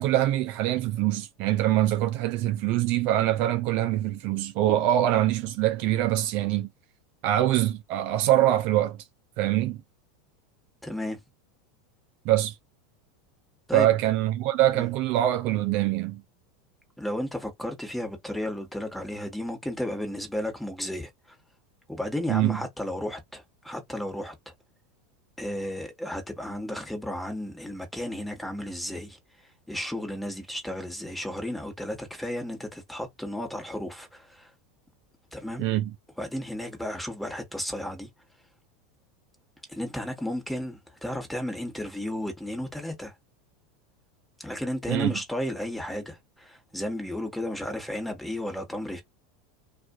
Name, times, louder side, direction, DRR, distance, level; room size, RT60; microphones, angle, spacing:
voice 1, 0.0-6.7 7.2-9.0 9.4-9.8 12.3-12.5 13.7-16.2 22.3-22.6 35.6-35.9 44.9-45.1, right 13 dB, 55° right, 0.3 m, -24 dB
voice 2, 10.8-11.2 13.7-13.9 14.7-14.9 17.0-21.1 21.9-24.3 25.4-29.2 29.7-34.5 35.3-35.7 36.2-38.1 39.7-43.1 44.4-49.0, left 1 dB, 5° left, 1.2 m, -33 dB
2.5 x 2.4 x 2.3 m
hypercardioid pair, 90°, 3 cm